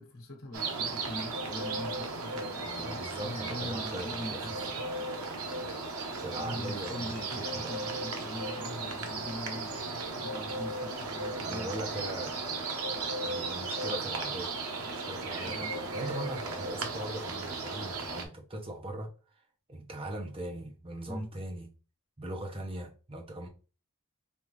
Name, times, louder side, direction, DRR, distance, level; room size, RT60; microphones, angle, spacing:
voice 1, 0.0-4.8 6.0-11.7 15.4-16.1 21.1-21.3, left 1 dB, 70° left, 1.1 m, -42 dB
sound 1, 0.5-18.3, right 3 dB, 85° right, 1.0 m, -36 dB
voice 2, 2.6-4.6 6.2-7.7 11.4-12.7 13.2-14.5 14.9-15.7 15.9-19.1 19.7-21.7 22.2-23.5, right 1 dB, 25° right, 0.9 m, -40 dB
5.3 x 2.6 x 3.1 m
head